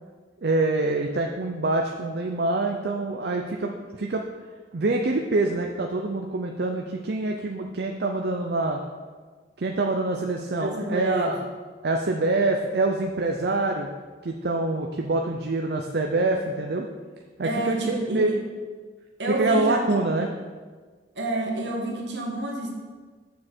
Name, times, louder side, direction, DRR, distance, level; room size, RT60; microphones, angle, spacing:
voice 1, 0.4-4.2 4.7-8.8 9.6-11.4 11.8-13.9 14.2-16.9 17.4-18.3 19.3-20.3, right 2 dB, 60° right, 2 dB, 0.5 m, -25 dB
voice 2, 10.6-11.3 17.4-18.4 19.2-19.8 21.2-22.7, right 2 dB, 75° right, 0 dB, 1.5 m, -28 dB
7.3 x 6.5 x 4.4 m, 1.5 s
head